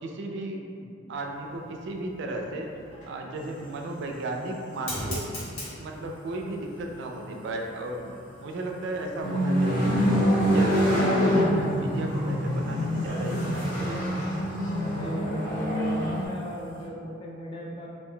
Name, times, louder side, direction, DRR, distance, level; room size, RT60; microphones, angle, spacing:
voice 1, 0.0-2.7 3.0-5.2 5.7-10.2 10.5-14.0, right 2 dB, 60° right, 2 dB, 0.3 m, -35 dB
Fire, 1.1-16.8, equal, 70° left, 1.1 m, -45 dB
sound 1, 9.2-16.2, equal, 40° left, 0.9 m, -25 dB
voice 2, 14.7-17.9, right 1 dB, 25° left, -3 dB, 0.3 m, -37 dB
2.5 x 2.1 x 3.7 m, 2.5 s
head